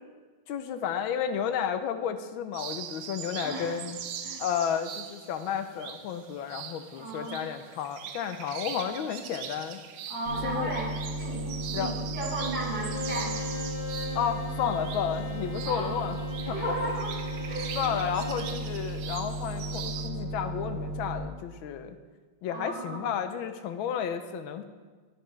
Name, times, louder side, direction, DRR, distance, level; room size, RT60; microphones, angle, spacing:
voice 1, 0.5-4.0 4.4-9.8 10.4-10.7 11.7-11.9 14.1-16.2 16.5-16.9 17.8-22.0 22.4-24.6, left 8 dB, 80° left, 9 dB, 1.4 m, -32 dB
sound 1, 2.5-20.1, right 8 dB, 85° right, 1.5 m, -42 dB
voice 2, 3.4-3.8 4.2-4.4 7.0-7.4 10.1-13.3 15.6-15.9 16.5-17.9 22.5-23.1, right 2 dB, 50° right, -4 dB, 2.4 m, -35 dB
sound 2, 10.3-21.2, right 1 dB, 50° left, 2.4 m, -35 dB
Bowed string instrument, 12.7-18.6, left 1 dB, 25° left, 1.3 m, -40 dB
9.7 x 9.4 x 3.2 m, 1.4 s
omnidirectional pair, 2.3 m